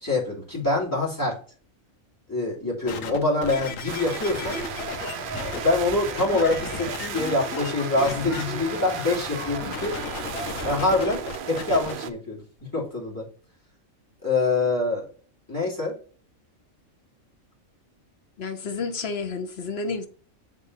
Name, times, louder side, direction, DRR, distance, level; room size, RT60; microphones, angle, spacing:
voice 1, 0.0-1.4 2.3-4.6 5.5-10.0 10.6-13.3 14.2-15.1 15.5-16.0, left 2 dB, 15° left, 3.0 m, -25 dB
sound 1, 2.9-5.6 6.2-7.7 8.0-8.4 9.7-11.9 12.6-12.7, left 6 dB, 75° left, 1.3 m, -36 dB
sound 2, 3.9-12.1, right 8 dB, 55° right, 0.6 m, -36 dB
Crowd, 4.3-11.0, equal, 30° left, 3.3 m, -36 dB
voice 2, 18.4-20.1, left 4 dB, 50° left, 1.1 m, -30 dB
7.2 x 3.8 x 5.5 m
omnidirectional pair, 1.4 m